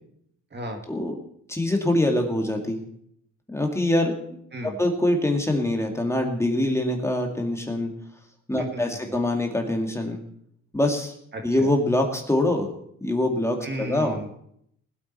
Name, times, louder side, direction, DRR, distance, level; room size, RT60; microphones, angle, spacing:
voice 1, 1.5-2.8 3.5-4.4 4.6-7.9 8.5-10.2 10.7-11.1 11.4-12.7 13.0-14.2, left 1 dB, 10° left, 2 dB, 2.4 m, -24 dB
voice 2, 11.3-11.7 13.6-14.4, equal, 35° right, 3 dB, 2.1 m, -34 dB
20.0 x 8.5 x 4.5 m, 0.69 s
cardioid pair, 90°, 30 cm